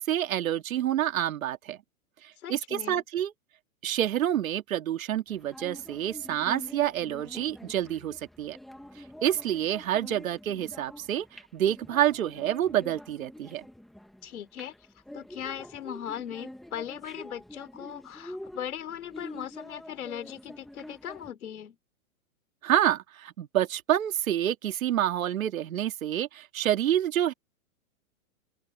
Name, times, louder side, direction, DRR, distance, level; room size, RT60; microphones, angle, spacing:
voice 1, 0.0-1.8 2.2-3.3 3.8-8.6 9.2-13.7 22.6-27.3, right 11 dB, 70° right, 2.1 m, -28 dB
voice 2, 2.4-3.0 14.2-14.7 15.1-21.8, left 10 dB, 80° left, 3.3 m, -39 dB
sound 1, 5.3-21.3, left 1 dB, ahead, 0.5 m, -46 dB
open air
hypercardioid pair, 160°, 42 cm